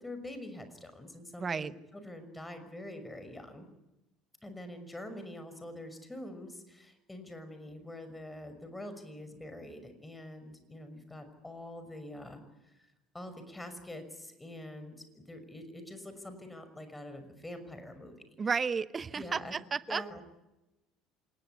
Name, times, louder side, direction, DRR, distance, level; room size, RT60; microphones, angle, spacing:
voice 1, 0.0-3.7 4.4-12.4 12.8-12.9 13.1-18.2 19.2-19.5 19.9-20.2, left 1 dB, 10° left, 9 dB, 6.0 m, -45 dB
voice 2, 1.4-1.7 18.4-20.0, right 5 dB, 30° right, 18 dB, 0.9 m, -32 dB
27.5 x 19.5 x 9.6 m, 0.98 s
figure-of-eight pair, 60°, 0 cm